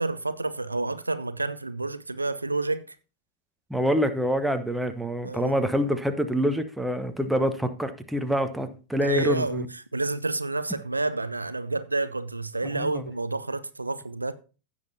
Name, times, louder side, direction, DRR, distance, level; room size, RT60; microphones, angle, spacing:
voice 1, 0.0-2.8 5.2-5.5 9.0-9.6 9.9-14.3, right 2 dB, 80° right, 0.5 m, -29 dB
voice 2, 3.7-9.7 12.7-13.0, equal, 5° right, 1.0 m, -26 dB
16.0 x 7.2 x 2.8 m
figure-of-eight pair, 90°, 0 cm